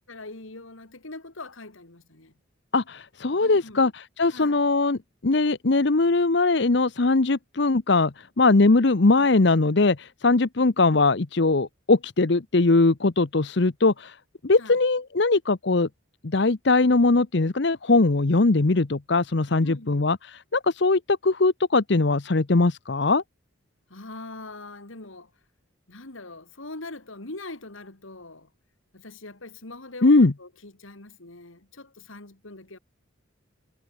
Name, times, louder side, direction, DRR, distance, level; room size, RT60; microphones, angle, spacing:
voice 1, 0.1-2.3 3.4-3.9 4.3-4.6 9.2-9.3 14.6-14.8 19.6-20.1 23.9-25.3 25.9-28.5 28.9-32.8, left 2 dB, 80° left, 2.8 m, -42 dB
voice 2, 2.7-14.2 14.4-15.9 16.2-23.2 30.0-30.3, left 3 dB, 55° left, 0.8 m, -21 dB
head